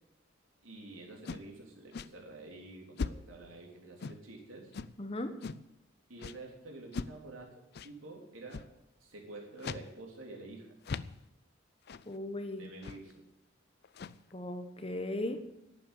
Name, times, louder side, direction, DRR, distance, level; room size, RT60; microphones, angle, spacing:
voice 1, 0.6-4.7 6.1-7.5 7.8-8.7 9.0-10.7 12.5-13.1, right 2 dB, 80° right, 0 dB, 3.6 m, -48 dB
sound 1, 1.2-1.5 1.9-2.1 3.0-3.4 4.0-4.3 4.7-5.0 5.4-5.7 6.2-6.4 6.9-7.2 7.7-7.9 8.5-8.8 9.6-9.9 10.2-10.3 10.8-11.2 11.9-12.1 12.8-13.1 13.8-14.3, left 4 dB, 50° left, 0.4 m, -40 dB
voice 2, 5.0-5.4 12.1-12.7 14.3-15.4, left 1 dB, 25° left, 8 dB, 1.0 m, -37 dB
11.5 x 8.8 x 8.4 m, 0.86 s
head